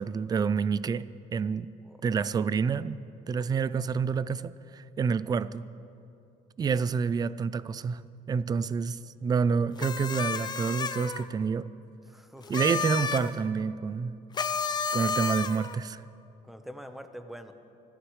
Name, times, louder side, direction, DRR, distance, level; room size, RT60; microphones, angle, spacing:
voice 1, 0.0-1.7 2.0-3.0 3.3-5.7 6.6-8.0 8.3-11.7 12.5-14.2 14.9-16.0, right 6 dB, 25° right, 0.4 m, -28 dB
sound 1, 9.8-11.3 12.4-13.3 14.3-15.8, left 6 dB, 25° left, 0.6 m, -31 dB
voice 2, 12.1-12.6 16.4-17.5, equal, ahead, 1.0 m, -45 dB
24.5 x 15.0 x 3.3 m
cardioid pair, 120°, 16 cm